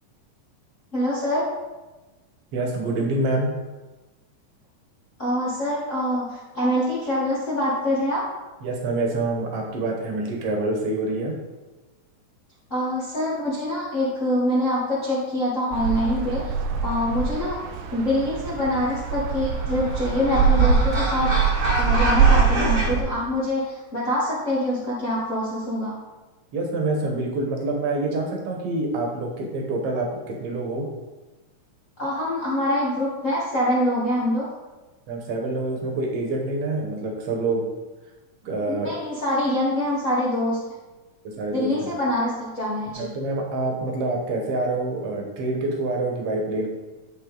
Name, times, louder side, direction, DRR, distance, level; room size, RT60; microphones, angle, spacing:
voice 1, 0.9-1.5 5.2-8.2 12.7-16.5 16.8-17.6 17.9-25.9 32.0-34.5 38.7-40.6 41.5-43.1, left 1 dB, 85° left, -9 dB, 0.6 m, -25 dB
voice 2, 2.5-3.5 8.6-11.4 26.5-30.9 35.1-37.6 38.4-38.9 41.2-41.9 43.0-46.7, right 2 dB, 60° right, 1 dB, 1.9 m, -26 dB
sound 1, 15.7-23.0, right 6 dB, 80° right, 2.0 m, -23 dB
sound 2, 19.0-22.9, right 1 dB, 45° right, 1.1 m, -28 dB
10.5 x 3.8 x 3.9 m, 1.1 s
omnidirectional pair, 3.7 m